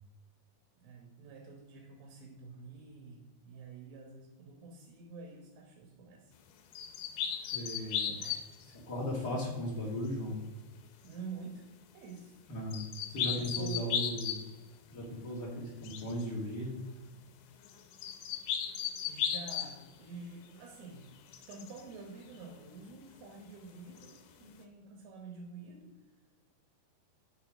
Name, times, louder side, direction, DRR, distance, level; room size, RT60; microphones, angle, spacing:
voice 1, 0.8-6.3 7.6-7.8 8.2-8.5 11.0-11.7 11.9-12.4 13.3-14.2 19.1-21.1 21.5-26.0, right 4 dB, 85° right, 1 dB, 3.5 m, -48 dB
sound 1, 6.7-8.6 12.7-14.6 15.8-16.2 17.6-19.8 21.3-21.8 24.0-24.2, left 8 dB, 90° left, 3.0 m, -36 dB
voice 2, 7.4-8.2 8.6-10.4 12.5-14.4 14.9-16.8, equal, 35° left, -4 dB, 1.7 m, -37 dB
7.0 x 6.6 x 5.0 m, 1.1 s
omnidirectional pair, 4.9 m